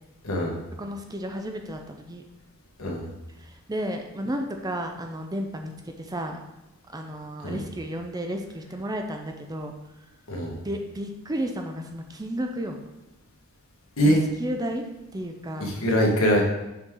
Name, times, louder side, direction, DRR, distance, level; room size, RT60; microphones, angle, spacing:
voice 1, 0.2-0.6 2.8-3.1 7.4-7.6 10.3-10.6 14.0-14.2 15.6-16.4, equal, 70° left, -1 dB, 1.4 m, -23 dB
voice 2, 0.8-2.2 3.4-6.4 6.9-9.7 10.6-12.8 14.0-14.8 15.1-15.8, equal, 15° right, 4 dB, 0.5 m, -32 dB
6.6 x 4.7 x 3.7 m, 0.97 s
head